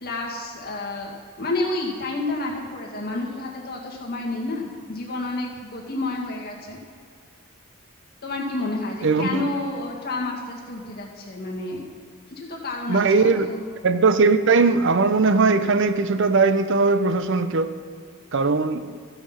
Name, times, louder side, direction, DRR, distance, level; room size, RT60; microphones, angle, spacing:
voice 1, 0.0-1.1 1.4-6.8 8.2-11.8 12.4-13.6, left 2 dB, 50° left, 2.0 m, -30 dB
voice 2, 9.0-9.4 12.9-13.5 13.8-17.7 18.3-18.9, right 4 dB, 65° right, 0.6 m, -19 dB
14.5 x 6.0 x 5.6 m
head